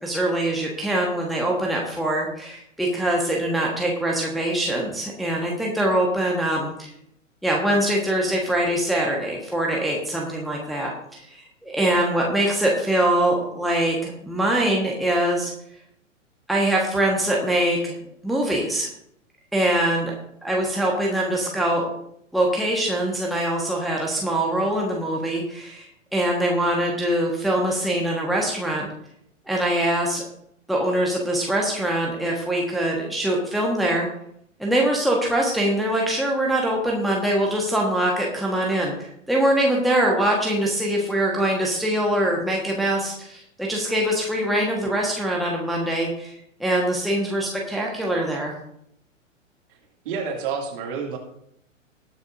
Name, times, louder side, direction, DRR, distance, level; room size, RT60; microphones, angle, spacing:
voice 1, 0.0-6.9 7.4-11.4 11.6-15.5 16.5-18.0 18.2-18.9 19.5-20.1 20.4-21.9 22.3-28.9 29.5-30.2 30.7-34.1 34.6-48.5, right 1 dB, ahead, -2 dB, 1.4 m, -23 dB
voice 2, 50.0-51.2, right 6 dB, 40° right, 1 dB, 2.6 m, -28 dB
20.0 x 6.7 x 2.7 m, 0.73 s
figure-of-eight pair, 110°, 39 cm